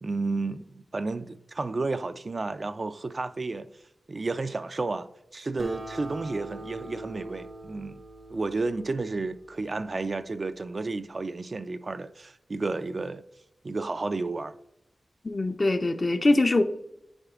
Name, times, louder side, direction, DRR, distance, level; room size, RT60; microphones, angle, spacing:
voice 1, 0.0-3.7 4.1-8.0 8.3-13.2 13.6-14.6, right 3 dB, 50° right, 0.3 m, -32 dB
Acoustic guitar, 5.6-10.4, right 2 dB, 75° right, 1.0 m, -43 dB
voice 2, 15.2-16.6, left 2 dB, 45° left, 0.5 m, -23 dB
9.8 x 4.9 x 2.4 m
wide cardioid pair, 60°, 0 cm